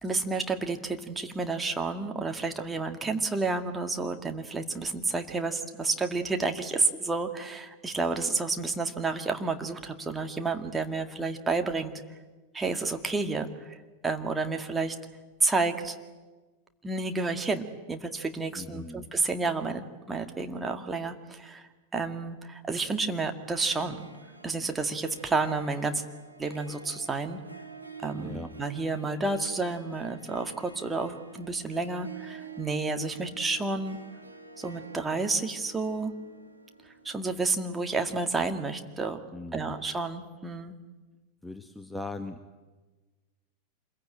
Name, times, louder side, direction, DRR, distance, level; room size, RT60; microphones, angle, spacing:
voice 1, 0.0-11.9 12.5-13.8 14.0-15.0 15.4-16.0 16.8-24.0 24.4-26.0 26.4-27.4 28.0-34.0 34.6-36.1 37.0-39.3 39.5-40.7, right 3 dB, 10° right, 5 dB, 2.1 m, -30 dB
voice 2, 18.6-19.1 28.2-28.5 39.3-39.7 41.4-42.4, left 2 dB, 5° left, 8 dB, 1.2 m, -39 dB
Harp, 23.4-38.7, right 4 dB, 85° right, 1.8 m, -47 dB
27.0 x 22.0 x 9.0 m, 1.3 s
figure-of-eight pair, 90°, 0 cm